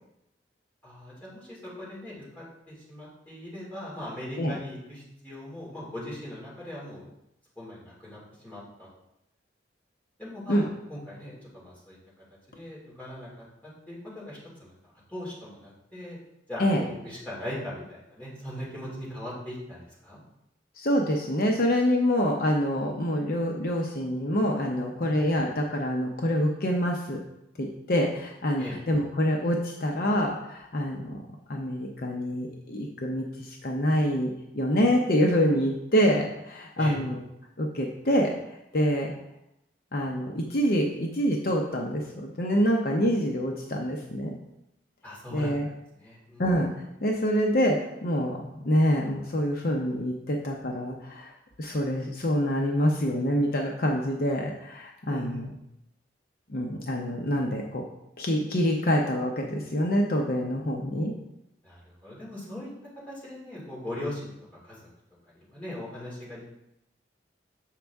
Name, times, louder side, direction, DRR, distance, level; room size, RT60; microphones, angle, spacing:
voice 1, 0.8-7.1 7.6-8.9 10.2-12.0 12.5-13.3 13.6-14.7 15.1-16.2 16.5-20.2 25.0-25.1 28.6-28.8 36.8-37.0 45.0-45.5 46.0-46.4 55.1-55.4 61.6-62.7 63.0-64.3 64.6-64.8 65.2-66.4, left 1 dB, 10° left, -8 dB, 2.5 m, -40 dB
voice 2, 20.8-27.2 27.6-31.2 31.5-37.2 37.6-38.3 38.7-39.1 39.9-44.3 45.3-45.7 46.4-51.3 51.6-55.5 56.5-57.8 58.2-61.1, equal, 55° left, 1 dB, 0.7 m, -26 dB
7.4 x 5.2 x 3.5 m, 0.85 s
head